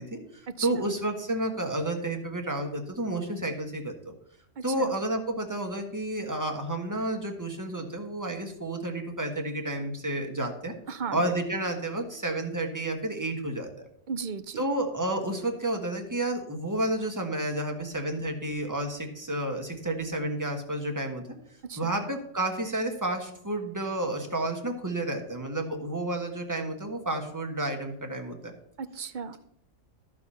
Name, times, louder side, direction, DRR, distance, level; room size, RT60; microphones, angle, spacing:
voice 1, 0.0-4.1 4.6-10.7 11.1-13.9 14.6-21.2 21.8-28.5, right 1 dB, 15° right, 3 dB, 1.4 m, -31 dB
voice 2, 0.6-0.9 4.6-4.9 10.9-11.2 14.1-14.6 21.6-21.9 28.8-29.4, right 5 dB, 55° right, 12 dB, 0.6 m, -35 dB
13.5 x 4.9 x 5.6 m, 0.73 s
omnidirectional pair, 1.3 m